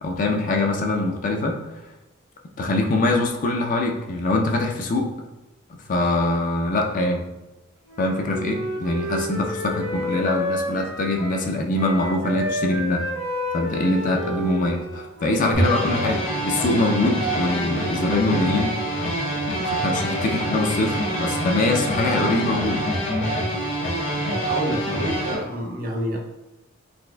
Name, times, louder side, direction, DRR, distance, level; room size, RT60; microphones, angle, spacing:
voice 1, 0.0-1.6 2.6-5.1 5.7-7.2 8.0-13.0 13.5-18.8 19.5-22.8, left 2 dB, 40° left, 2 dB, 0.4 m, -23 dB
Wind instrument woodwind instrument, 7.9-11.5 11.7-15.7, left 1 dB, 90° right, 1.0 m, -30 dB
sound 1, 15.5-25.3, right 1 dB, 90° left, 1.0 m, -25 dB
voice 2, 24.3-26.2, equal, 45° right, 1 dB, 0.6 m, -28 dB
4.0 x 2.4 x 2.2 m, 0.99 s
head